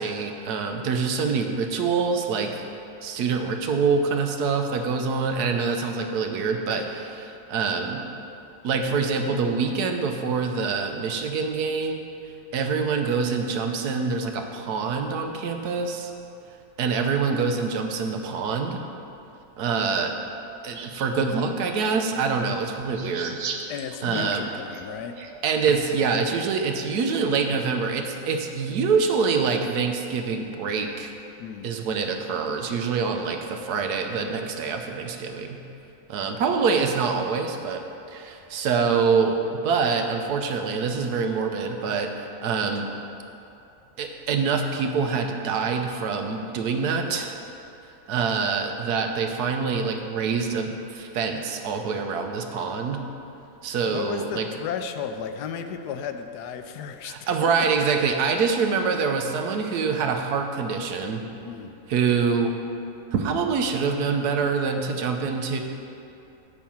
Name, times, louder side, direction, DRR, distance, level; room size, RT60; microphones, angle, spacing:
voice 1, 0.0-2.6 3.0-8.0 8.6-12.1 12.5-16.1 16.8-18.8 19.6-20.1 20.6-23.4 24.0-24.5 25.4-31.1 31.6-35.6 36.1-37.8 38.1-39.4 39.6-42.1 42.4-42.9 44.0-47.4 48.1-53.0 53.6-54.5 57.0-61.2 61.9-62.5 63.1-65.6, right 5 dB, 75° right, 4 dB, 1.3 m, -25 dB
sound 1, 20.7-21.1 21.7-21.8 22.8-26.0, right 6 dB, 60° right, 0.8 m, -37 dB
voice 2, 23.7-25.2 31.4-31.7 53.8-57.3 61.4-61.7, left 7 dB, 85° left, 8 dB, 1.2 m, -34 dB
10.0 x 4.4 x 7.2 m, 2.7 s
omnidirectional pair, 1.7 m